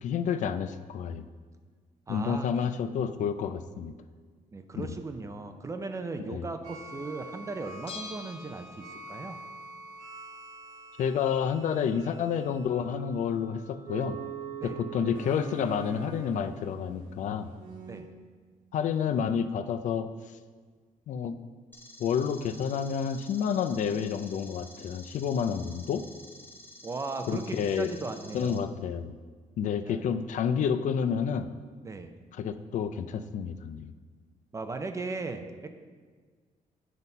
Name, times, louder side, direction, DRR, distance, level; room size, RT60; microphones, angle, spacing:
voice 1, 0.0-1.3 2.1-3.9 4.7-4.9 6.3-6.5 11.0-14.2 14.6-17.5 18.7-20.1 21.1-21.4 22.0-26.0 27.3-27.9 28.3-29.1 29.6-31.5 32.3-33.9, left 7 dB, 60° left, 10 dB, 0.4 m, -29 dB
voice 2, 2.1-2.7 4.5-9.4 14.6-14.8 17.9-18.1 26.8-28.7 29.8-30.1 31.8-32.1 34.5-35.7, right 3 dB, 20° right, 7 dB, 0.5 m, -37 dB
sound 1, 6.6-18.0, right 5 dB, 85° right, 1.6 m, -44 dB
Bell, 7.9-9.3 9.5-9.6, left 4 dB, 45° left, 0.8 m, -45 dB
sound 2, 21.7-28.6, left 1 dB, 15° left, 0.8 m, -51 dB
9.2 x 4.1 x 5.4 m, 1.5 s
cardioid pair, 150°, 14 cm